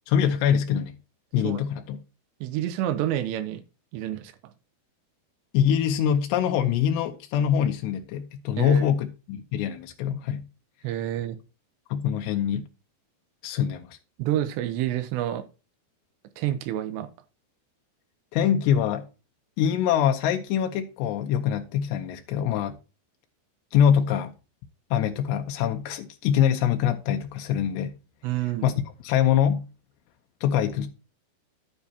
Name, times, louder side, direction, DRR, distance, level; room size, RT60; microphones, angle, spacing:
voice 1, 0.1-1.0 1.3-2.0 5.5-10.4 11.9-12.7 13.4-14.0 18.3-19.1 19.6-22.8 23.7-24.3 24.9-27.9 28.6-29.6 30.4-30.9, left 9 dB, 85° left, 2.9 m, -24 dB
voice 2, 2.4-3.6 3.9-4.3 8.6-8.8 10.8-11.4 14.2-15.4 16.4-17.1 28.2-28.7, right 12 dB, 80° right, 3.0 m, -28 dB
10.5 x 9.4 x 2.8 m
omnidirectional pair, 5.0 m